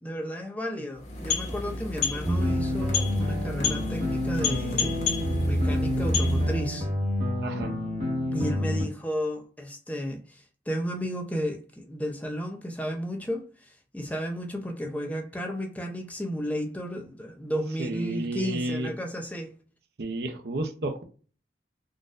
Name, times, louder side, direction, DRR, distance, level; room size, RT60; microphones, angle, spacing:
voice 1, 0.0-5.1 5.4-6.9 8.3-13.5 13.9-19.5, equal, 10° left, 0.6 m, -33 dB
sound 1, 0.9-6.7, left 4 dB, 40° left, 0.8 m, -31 dB
sound 2, 2.2-8.8, equal, 40° right, 1.1 m, -28 dB
voice 2, 17.8-18.9 20.0-21.0, right 2 dB, 60° right, 0.6 m, -31 dB
3.9 x 2.5 x 2.4 m
head